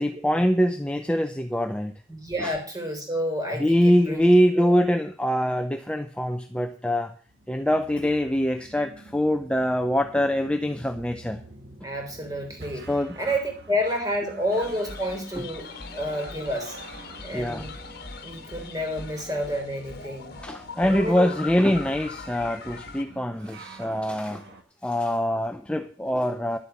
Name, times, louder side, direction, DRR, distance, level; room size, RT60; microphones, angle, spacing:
voice 1, 0.0-1.9 2.4-2.5 3.6-7.1 7.5-11.4 12.9-13.2 15.4-15.5 17.3-17.7 20.4-24.4 24.8-26.6, equal, 5° left, 7 dB, 0.6 m, -24 dB
voice 2, 2.1-4.3 4.6-4.7 11.8-12.9 13.2-15.7 15.9-16.8 17.2-17.7 18.2-20.4 20.8-21.3, equal, 20° right, 3 dB, 3.8 m, -29 dB
sound 1, 7.3-24.6, right 2 dB, 55° right, 1.8 m, -48 dB
sound 2, 14.5-23.0, left 4 dB, 55° left, 1.4 m, -41 dB
11.5 x 7.8 x 7.2 m, 0.42 s
head